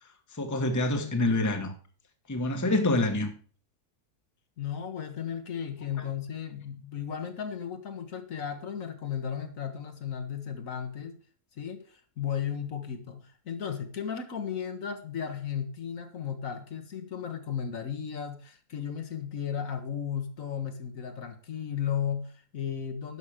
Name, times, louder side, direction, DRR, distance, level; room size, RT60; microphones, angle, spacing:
voice 1, 0.4-1.7 2.3-3.3, left 2 dB, 15° left, 1.0 m, -26 dB
voice 2, 4.6-11.2 11.6-23.2, left 8 dB, 60° left, 1.5 m, -35 dB
11.0 x 5.9 x 5.0 m
omnidirectional pair, 1.6 m